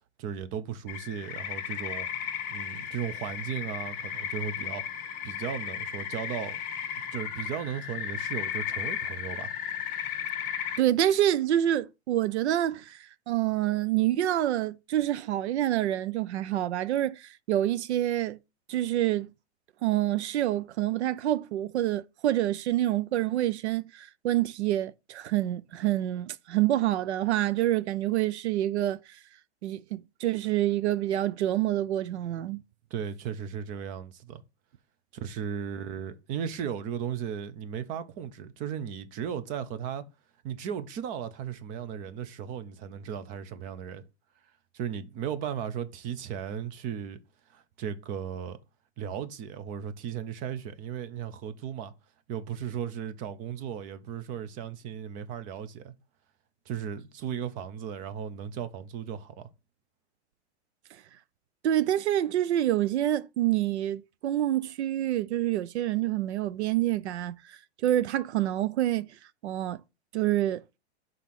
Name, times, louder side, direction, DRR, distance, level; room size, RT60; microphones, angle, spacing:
voice 1, 0.2-2.1 2.5-4.8 5.2-6.6 7.1-9.5 32.9-34.4 35.2-40.0 40.4-44.1 44.7-47.2 47.5-48.6 49.0-51.9 52.3-55.9 56.7-59.5, right 8 dB, 25° right, 0.6 m, -36 dB
sound 1, 0.9-10.8, left 9 dB, 25° left, 1.1 m, -35 dB
voice 2, 10.8-18.4 18.7-19.3 19.8-29.0 29.6-32.6 61.6-69.1 69.4-69.8 70.1-70.6, right 13 dB, 80° right, 0.7 m, -27 dB
5.5 x 3.8 x 5.9 m
supercardioid pair, 155°, 33 cm